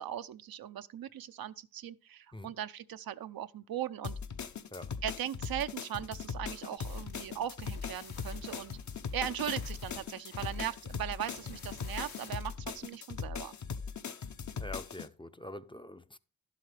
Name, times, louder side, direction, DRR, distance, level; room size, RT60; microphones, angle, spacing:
voice 1, 0.0-4.2 5.0-8.8 9.1-13.5, right 11 dB, 80° right, 0.6 m, -39 dB
sound 1, 4.0-15.1, left 6 dB, 55° left, 0.8 m, -40 dB
sound 2, 6.8-12.5, left 4 dB, 90° left, 1.9 m, -53 dB
voice 2, 14.6-16.2, left 1 dB, 15° left, 0.5 m, -45 dB
11.5 x 7.7 x 3.3 m
cardioid pair, 60°, 35 cm